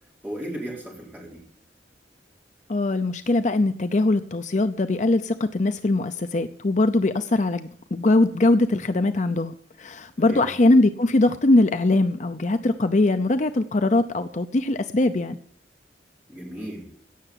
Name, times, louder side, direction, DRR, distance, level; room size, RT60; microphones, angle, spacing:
voice 1, 0.2-1.4 10.2-10.5 16.3-16.9, right 1 dB, 10° right, -4 dB, 4.8 m, -35 dB
voice 2, 2.7-15.4, left 2 dB, 40° left, 9 dB, 0.6 m, -21 dB
17.0 x 6.9 x 8.3 m, 0.63 s
head